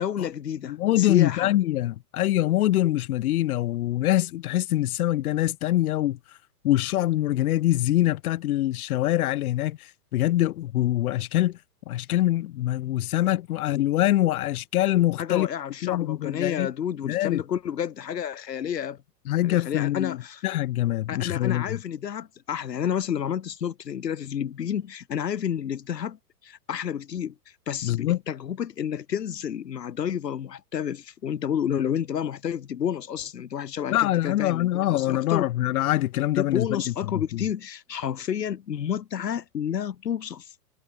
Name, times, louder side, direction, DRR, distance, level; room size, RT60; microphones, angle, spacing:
voice 1, 0.0-1.5 15.2-19.0 19.4-20.4 21.1-26.2 26.4-27.3 27.7-35.5 36.4-40.5, left 9 dB, 85° left, 2.1 m, -30 dB
voice 2, 0.7-6.2 6.6-11.6 11.9-15.5 15.8-16.7 17.0-17.4 19.3-20.2 20.4-21.8 27.8-28.2 33.9-36.8 37.1-37.4, left 14 dB, 60° left, 2.1 m, -24 dB
hypercardioid pair, 120°, 48 cm